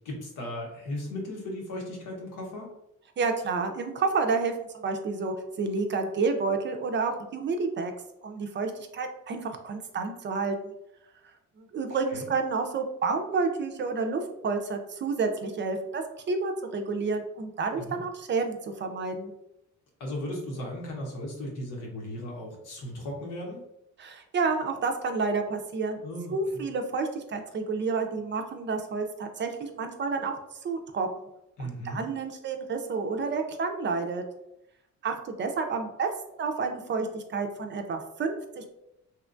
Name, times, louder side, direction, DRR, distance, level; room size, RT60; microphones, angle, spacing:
voice 1, 0.0-2.7 12.1-12.3 17.8-18.0 20.0-23.6 26.0-26.7 31.6-32.0, left 1 dB, 85° left, -1 dB, 1.0 m, -36 dB
voice 2, 3.2-7.9 8.2-10.7 11.6-19.3 24.0-26.0 26.3-30.3 30.6-31.1 31.6-34.2 35.0-36.1 36.4-38.7, right 4 dB, 40° right, 5 dB, 0.4 m, -30 dB
2.8 x 2.2 x 2.5 m, 0.83 s
cardioid pair, 90°, 30 cm